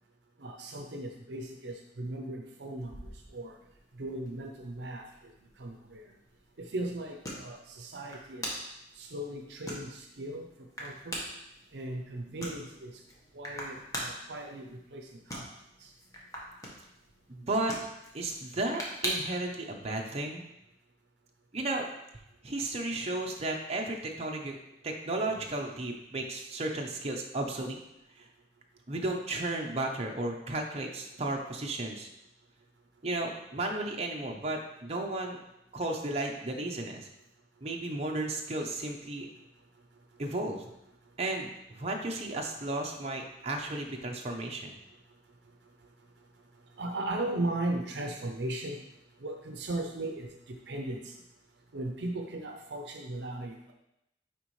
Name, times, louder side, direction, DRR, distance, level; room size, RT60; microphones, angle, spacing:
voice 1, 0.4-3.6 3.9-6.1 6.6-8.6 9.0-11.2 11.7-13.0 13.3-15.4 15.8-15.9 46.8-48.8 49.2-51.2 51.7-53.7, right 1 dB, 70° right, 3 dB, 0.6 m, -37 dB
sound 1, 2.8-19.5, equal, 20° left, 1.3 m, -43 dB
voice 2, 17.3-17.8 18.1-20.5 21.5-21.9 22.4-24.6 24.8-27.8 28.2-28.3 28.9-32.1 33.0-35.4 35.7-37.1 37.6-39.3 40.2-40.6 41.2-44.8, right 2 dB, 35° right, 1 dB, 0.8 m, -34 dB
9.4 x 3.7 x 3.2 m, 0.85 s
head